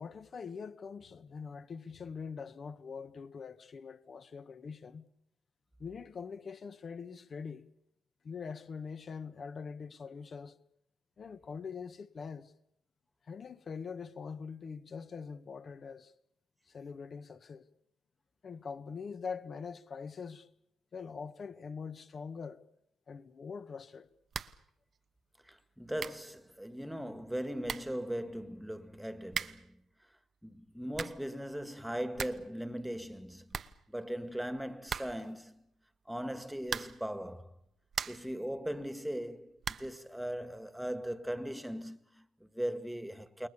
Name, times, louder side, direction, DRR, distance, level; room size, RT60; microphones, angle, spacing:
voice 1, 0.0-5.1 5.8-7.7 8.2-10.6 11.2-12.5 13.3-16.1 16.7-17.7 18.4-20.5 20.9-22.6 23.1-24.1, left 5 dB, 45° left, 1.5 m, -43 dB
sound 1, 24.3-24.7 24.9-25.0 25.7-25.8 26.0-26.3 27.3-27.4 27.6-28.0 29.3-29.7 30.7-31.3 31.7-31.8 32.0-32.5 32.8-32.9 33.1-33.2 33.5-34.3 34.9-35.4 36.6-37.1 37.6-38.4 39.6-40.0, right 7 dB, 50° right, 1.0 m, -40 dB
voice 2, 25.5-29.8 30.4-33.6 33.9-35.6 36.1-37.5 38.1-43.5, equal, 5° right, 1.9 m, -39 dB
29.5 x 21.0 x 7.0 m
cardioid pair, 90°, 0 cm